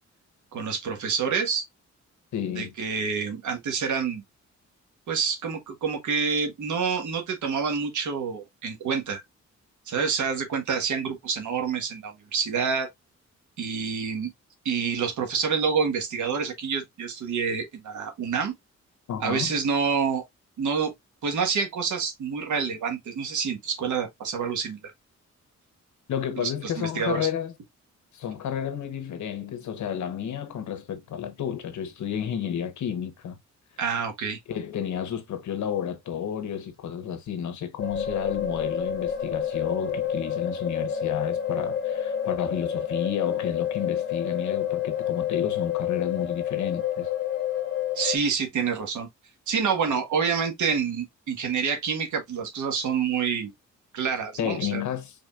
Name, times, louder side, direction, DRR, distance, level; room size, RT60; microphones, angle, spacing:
voice 1, 0.5-1.7 2.5-4.2 5.1-9.2 9.9-12.9 13.6-14.3 14.6-18.5 19.2-20.2 20.6-20.9 21.2-24.8 26.4-27.3 33.8-34.4 47.9-49.1 49.5-53.5 53.9-54.8, right 6 dB, 85° right, 1.5 m, -27 dB
voice 2, 2.3-2.7 19.1-19.5 26.1-27.5 28.1-33.4 34.5-47.1 54.4-55.1, left 8 dB, 80° left, 1.1 m, -31 dB
sound 1, 37.8-48.2, left 9 dB, 35° left, 1.2 m, -29 dB
5.0 x 3.6 x 2.4 m
wide cardioid pair, 155°, 29 cm